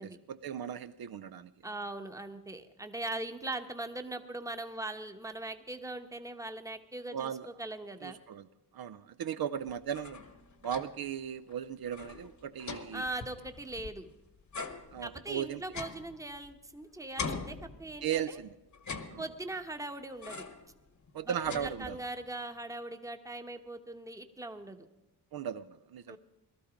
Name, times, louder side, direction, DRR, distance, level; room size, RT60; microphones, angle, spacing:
voice 1, 0.0-1.5 7.1-7.5 8.0-8.5 8.7-10.2 10.6-13.0 14.9-15.6 18.0-18.6 19.1-19.2 21.1-22.0 25.3-26.2, right 9 dB, 65° right, 11 dB, 0.6 m, -37 dB
voice 2, 1.6-8.2 12.9-14.1 15.0-18.4 19.2-20.4 21.2-24.9 26.1-26.2, right 2 dB, 10° right, 7 dB, 1.0 m, -40 dB
sound 1, 9.7-11.1 11.5-11.6 11.9-14.1 14.5-16.8 17.2-18.3 18.7-19.6 20.2-20.7 21.1-22.2, left 4 dB, 45° left, 1.2 m, -43 dB
18.5 x 13.0 x 5.1 m, 0.98 s
wide cardioid pair, 120°, 40 cm